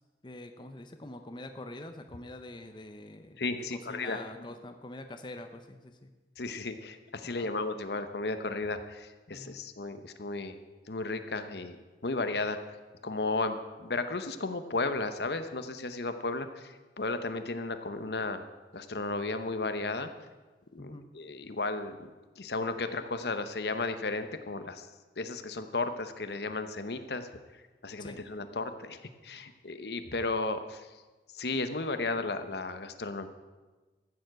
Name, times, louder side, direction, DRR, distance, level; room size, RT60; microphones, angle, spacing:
voice 1, 0.2-3.4 3.7-6.1 7.2-7.5 9.3-9.6 20.8-21.1 28.0-28.2, left 1 dB, 25° left, 7 dB, 0.7 m, -45 dB
voice 2, 3.4-4.2 6.4-10.6 10.9-11.8 12.0-12.6 13.0-18.4 18.7-20.1 20.7-22.1 22.4-24.9 25.2-27.3 27.8-30.9 31.3-33.3, left 3 dB, 65° left, 9 dB, 0.9 m, -34 dB
14.5 x 7.2 x 7.7 m, 1.2 s
head